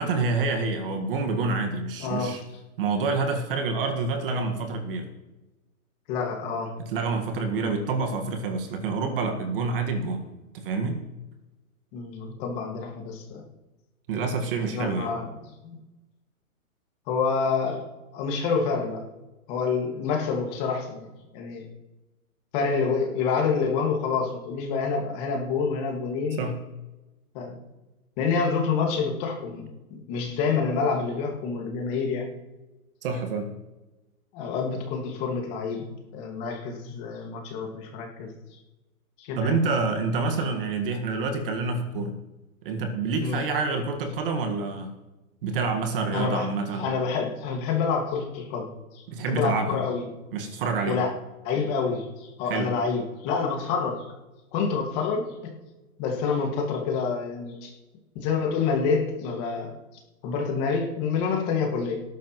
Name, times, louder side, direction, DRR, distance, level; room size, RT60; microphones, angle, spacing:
voice 1, 0.0-2.4 2.8-5.1 6.8-10.3 10.5-11.0 14.1-15.1 26.4-26.6 33.0-33.5 39.4-42.1 42.6-44.9 45.4-46.9 49.1-49.8 50.3-51.0 52.5-52.7, right 4 dB, 40° right, 5 dB, 1.8 m, -27 dB
voice 2, 2.0-2.4 6.1-6.7 11.9-13.4 14.6-15.3 15.6-15.8 17.1-17.9 18.1-19.1 19.5-21.1 21.3-21.7 22.5-26.5 27.3-27.6 28.2-32.3 34.3-38.6 39.2-39.6 43.2-43.4 46.1-46.5 46.8-50.1 50.9-51.1 51.4-54.1 54.5-55.5 56.0-57.7 58.2-59.7 60.2-62.0, left 5 dB, 25° left, 1 dB, 2.0 m, -27 dB
19.0 x 11.0 x 3.1 m, 1.1 s
hypercardioid pair, 160°, 44 cm